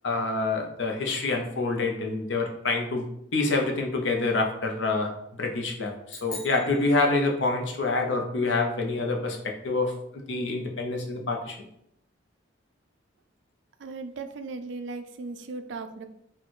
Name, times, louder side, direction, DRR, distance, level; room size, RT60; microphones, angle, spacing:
voice 1, 0.0-3.1 3.3-11.6, left 3 dB, 65° left, 2 dB, 0.8 m, -27 dB
sound 1, 6.1-7.7, left 2 dB, 45° left, 1.3 m, -44 dB
voice 2, 13.8-16.1, right 3 dB, 60° right, 9 dB, 0.4 m, -37 dB
4.3 x 2.4 x 4.6 m, 0.76 s
head